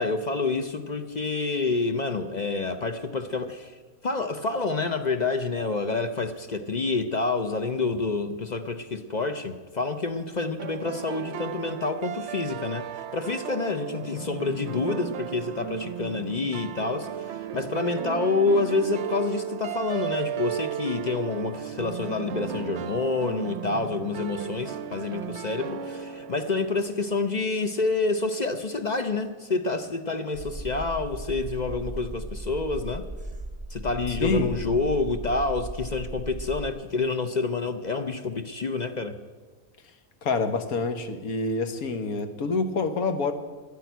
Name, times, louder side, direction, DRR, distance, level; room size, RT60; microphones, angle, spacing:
voice 1, 0.0-3.8 4.0-33.1 33.7-39.2, left 3 dB, 45° left, 8 dB, 0.6 m, -28 dB
sound 1, 10.6-27.5, right 9 dB, 60° right, 0.8 m, -35 dB
sound 2, 30.3-36.7, right 1 dB, 5° right, 0.9 m, -37 dB
voice 2, 34.2-34.6 40.2-43.3, left 3 dB, 90° left, 8 dB, 1.6 m, -27 dB
11.0 x 10.5 x 9.3 m, 1.4 s
omnidirectional pair, 1.5 m